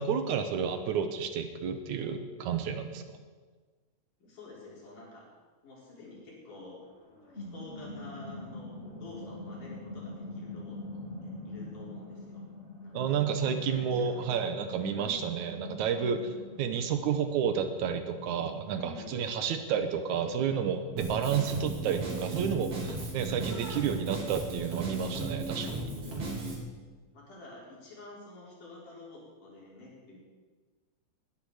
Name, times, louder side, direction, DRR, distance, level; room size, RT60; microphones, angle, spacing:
voice 1, 0.0-3.0 12.9-25.8, right 7 dB, 75° right, 8 dB, 2.3 m, -31 dB
voice 2, 4.2-5.3 5.6-6.9 7.1-12.4 12.8-13.1 13.4-14.2 14.9-15.3 18.7-19.3 23.3-23.5 27.1-30.2, left 2 dB, 80° left, -4 dB, 5.6 m, -49 dB
sound 1, 6.9-21.1, left 2 dB, 20° left, 3.5 m, -45 dB
Drum kit, 21.0-26.5, right 3 dB, 50° right, 4.5 m, -36 dB
20.5 x 11.5 x 4.9 m, 1.4 s
omnidirectional pair, 3.6 m